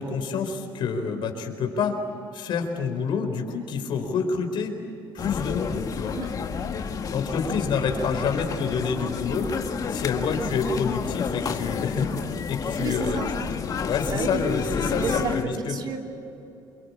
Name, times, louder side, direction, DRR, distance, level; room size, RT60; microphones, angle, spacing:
voice 1, 0.0-2.0 2.3-4.8 5.1-6.2 7.1-9.5 9.9-12.1 12.5-13.4 13.8-15.7, left 5 dB, 60° left, 5 dB, 4.3 m, -27 dB
sound 1, 5.2-15.4, left 6 dB, 40° left, 1.7 m, -30 dB
voice 2, 12.8-13.3 14.1-14.4 14.9-16.0, right 4 dB, 50° right, 3 dB, 3.2 m, -30 dB
28.5 x 22.5 x 8.6 m, 2.8 s
cardioid pair, 115°, 9 cm